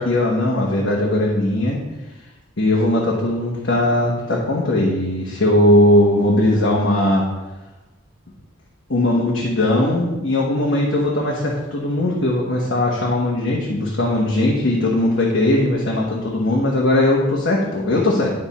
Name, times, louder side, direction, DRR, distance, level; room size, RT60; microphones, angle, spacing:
voice 1, 0.0-1.8 2.6-7.3 8.9-18.3, left 1 dB, 70° left, -3 dB, 1.2 m, -19 dB
10.5 x 4.4 x 4.2 m, 1.1 s
head